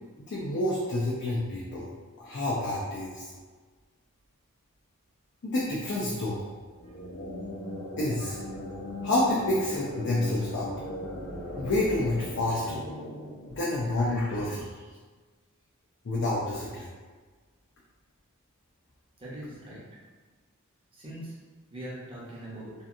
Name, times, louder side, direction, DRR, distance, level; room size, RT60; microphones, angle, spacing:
voice 1, 0.3-1.9 2.2-3.3 5.4-6.5 8.0-8.4 9.0-10.7 11.6-12.8 13.5-14.7 16.0-16.9, left 1 dB, 50° left, -6 dB, 0.4 m, -28 dB
sound 1, 6.7-14.3, left 1 dB, 80° left, 0.9 m, -38 dB
voice 2, 19.2-19.8 20.9-21.4 21.7-22.7, right 1 dB, 25° right, -7 dB, 0.7 m, -42 dB
2.8 x 2.5 x 2.4 m, 1.4 s
head